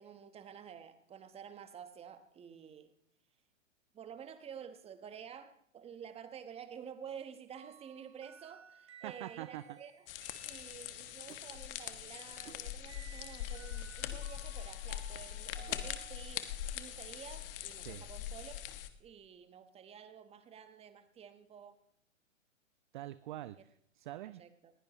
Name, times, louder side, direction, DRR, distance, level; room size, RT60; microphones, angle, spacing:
voice 1, 0.0-2.9 3.9-10.0 10.4-18.6 19.0-21.8 24.4-24.7, right 8 dB, 15° right, 10 dB, 1.2 m, -50 dB
sound 1, 7.5-11.3 12.9-16.6, right 8 dB, 55° right, 3.9 m, -58 dB
voice 2, 9.0-9.8 17.9-18.0 22.9-24.4, right 14 dB, 40° right, 17 dB, 0.5 m, -45 dB
sound 2, 10.1-18.9, left 11 dB, 45° left, 1.3 m, -42 dB
sound 3, 11.3-11.5 12.4-12.7 14.1-14.3 15.7-15.8, right 5 dB, 80° right, 1.4 m, -55 dB
20.5 x 15.5 x 3.1 m, 0.69 s
figure-of-eight pair, 115°, 39 cm